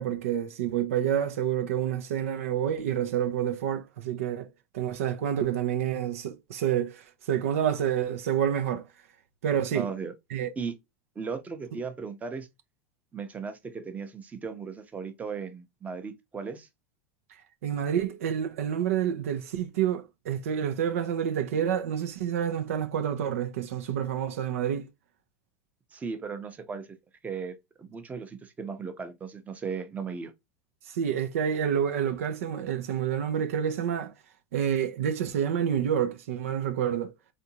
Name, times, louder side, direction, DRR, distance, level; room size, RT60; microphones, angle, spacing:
voice 1, 0.0-4.5 4.7-8.9 9.4-9.9 10.3-10.5 17.6-24.9 30.9-34.1 34.5-37.1, right 9 dB, 85° right, 0.5 m, -28 dB
voice 2, 9.7-10.1 10.6-10.7 11.2-12.5 13.1-16.7 25.9-26.9 27.2-30.3, right 5 dB, 20° right, 0.7 m, -36 dB
3.7 x 2.6 x 2.7 m
hypercardioid pair, 105°, 7 cm